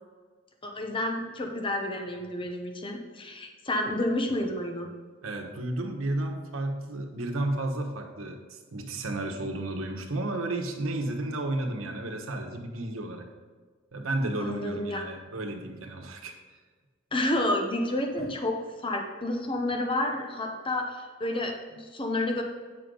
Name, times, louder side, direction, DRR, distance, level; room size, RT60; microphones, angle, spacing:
voice 1, 0.6-4.9 14.4-15.0 17.1-18.6 18.8-22.4, left 1 dB, 25° left, 2 dB, 0.9 m, -30 dB
voice 2, 5.2-13.3 13.9-16.3 18.2-18.3, right 2 dB, 80° right, 3 dB, 1.2 m, -32 dB
9.4 x 6.3 x 3.9 m, 1.5 s
head